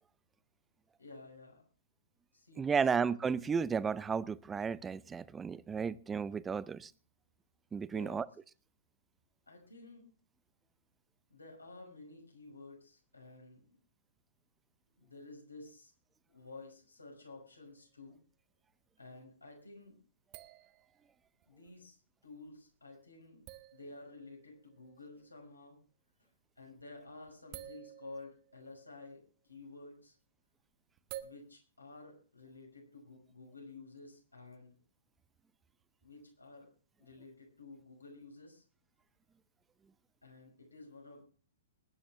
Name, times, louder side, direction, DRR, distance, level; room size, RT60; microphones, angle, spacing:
voice 1, 1.0-1.6 2.3-3.0 7.9-8.3 9.5-10.1 11.3-13.8 15.0-15.9 16.3-18.2 19.0-20.0 21.5-23.4 23.7-25.8 26.6-30.2 31.2-34.8 36.0-36.7 37.0-38.6 40.2-41.3, left 3 dB, 85° left, 1 dB, 5.8 m, -52 dB
voice 2, 2.6-6.9 7.7-8.2, right 6 dB, 15° right, 19 dB, 0.6 m, -33 dB
sound 1, 17.8-17.9 20.3-21.7 22.5-22.6 23.4-25.3 26.6-26.8 27.1-29.3 31.0-31.2, right 13 dB, 40° right, 1.1 m, -51 dB
21.5 x 10.0 x 3.6 m, 0.38 s
figure-of-eight pair, 110°, 0 cm